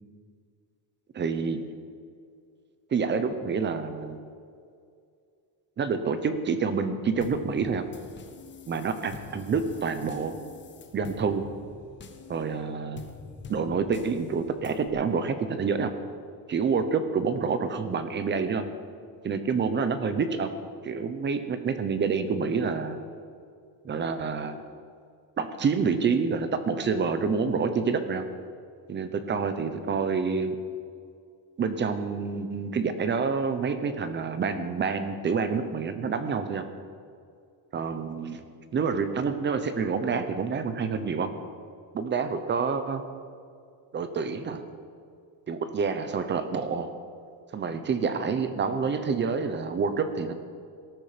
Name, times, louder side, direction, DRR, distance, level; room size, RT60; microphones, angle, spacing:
voice 1, 1.1-1.6 2.9-4.2 5.8-7.9 8.7-10.4 10.9-11.5 12.3-13.0 13.5-15.9 16.5-18.6 19.2-20.5 20.8-23.0 23.8-24.6 25.4-28.3 28.9-30.6 31.6-36.6 37.7-38.4 38.7-41.3 41.9-43.0 43.9-44.6 45.5-46.9 47.5-50.3, right 5 dB, 25° right, 10 dB, 1.0 m, -28 dB
sound 1, 7.2-14.9, left 5 dB, 25° left, 1.2 m, -46 dB
18.0 x 13.5 x 5.2 m, 2.3 s
cardioid pair, 175°, 41 cm